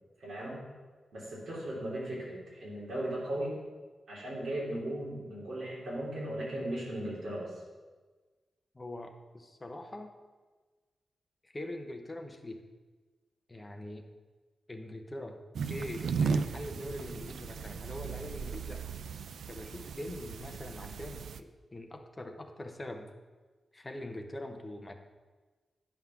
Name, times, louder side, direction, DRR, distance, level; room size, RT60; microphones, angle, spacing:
voice 1, 0.2-0.6 1.1-3.5 4.1-7.6, right 1 dB, 60° right, -5 dB, 3.4 m, -37 dB
voice 2, 8.7-10.1 11.4-12.6 13.5-14.0 14.7-15.4 15.7-18.9 19.5-23.1 23.7-24.9, left 1 dB, 15° left, 4 dB, 0.8 m, -43 dB
sound 1, 15.5-21.4, right 5 dB, 85° right, 0.4 m, -36 dB
9.7 x 5.7 x 5.8 m, 1.3 s
wide cardioid pair, 170°, 0 cm